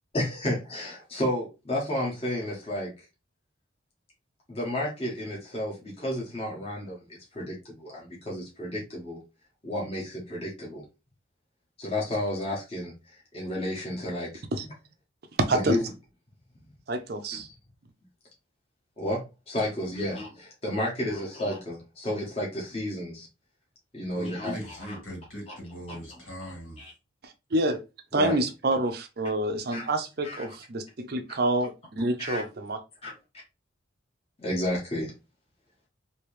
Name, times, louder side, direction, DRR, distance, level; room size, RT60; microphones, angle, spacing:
voice 1, 0.1-2.9 4.5-7.0 7.3-9.2 9.6-10.8 11.8-14.4 15.5-15.8 19.0-23.3 23.9-24.5 24.9-25.0 25.5-25.6 25.9-26.0 26.8-26.9 28.1-28.4 29.7-29.9 30.2-30.4 32.2-32.5 33.0-33.1 34.4-35.1, left 1 dB, 30° left, 1.2 m, -31 dB
voice 2, 16.9-17.5 27.2-27.8 28.1-32.8, right 2 dB, 50° right, 0.5 m, -28 dB
voice 3, 24.1-26.8, equal, 80° left, 2.1 m, -40 dB
3.1 x 2.9 x 3.1 m
head